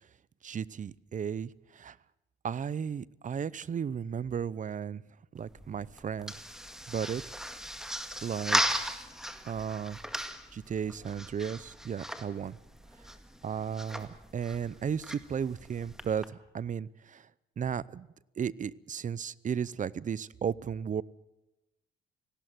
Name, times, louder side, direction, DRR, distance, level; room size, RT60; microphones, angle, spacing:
voice 1, 0.4-2.0 2.4-5.0 5.3-6.3 6.9-7.2 8.2-8.8 9.4-10.0 10.5-12.6 13.4-17.2 17.6-18.1 18.4-21.0, right 7 dB, 40° right, 22 dB, 0.7 m, -34 dB
sound 1, 5.3-16.3, equal, ahead, 2.0 m, -37 dB
18.5 x 17.0 x 9.2 m, 0.92 s
cardioid pair, 90°, 20 cm